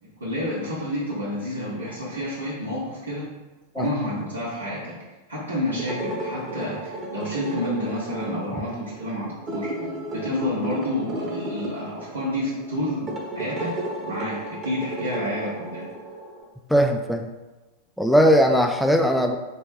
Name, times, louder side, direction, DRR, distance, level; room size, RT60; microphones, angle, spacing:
voice 1, 0.0-3.3 3.8-5.0 5.3-9.7 10.1-13.8 14.0-15.9, left 1 dB, 80° right, -8 dB, 1.1 m, -29 dB
sound 1, 5.7-16.4, right 1 dB, 25° right, 0.9 m, -34 dB
voice 2, 16.7-17.3 18.0-19.4, equal, ahead, 4 dB, 0.3 m, -19 dB
4.3 x 3.0 x 3.5 m, 1.2 s
figure-of-eight pair, 90°, 0 cm